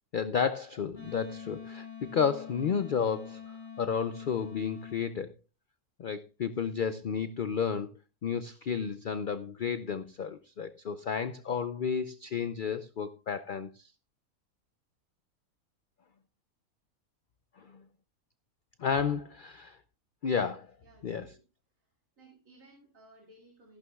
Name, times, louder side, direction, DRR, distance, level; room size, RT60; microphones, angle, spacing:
voice 1, 0.1-5.3 6.0-7.9 8.2-13.9 17.6-17.8 18.8-19.8 20.2-20.7 21.0-21.4, left 6 dB, 70° left, 12 dB, 0.5 m, -32 dB
Wind instrument woodwind instrument, 0.9-5.1, left 7 dB, 30° left, 6.2 m, -45 dB
voice 2, 20.8-21.4 22.2-23.8, right 2 dB, 60° right, -1 dB, 2.7 m, -58 dB
14.0 x 11.5 x 2.3 m, 0.32 s
omnidirectional pair, 1.6 m